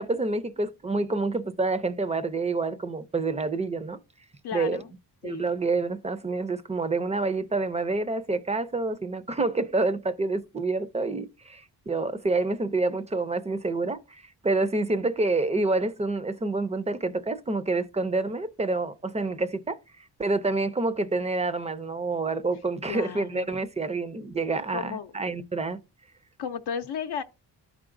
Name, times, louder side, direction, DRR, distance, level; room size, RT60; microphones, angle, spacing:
voice 1, 0.0-4.0 4.5-4.8 5.2-25.8, right 3 dB, 15° right, 0.4 m, -28 dB
voice 2, 4.4-4.9 5.2-5.5 22.8-23.5 24.7-25.1 26.4-27.2, left 7 dB, 75° left, 0.6 m, -34 dB
13.0 x 4.8 x 2.5 m
wide cardioid pair, 145°, 40 cm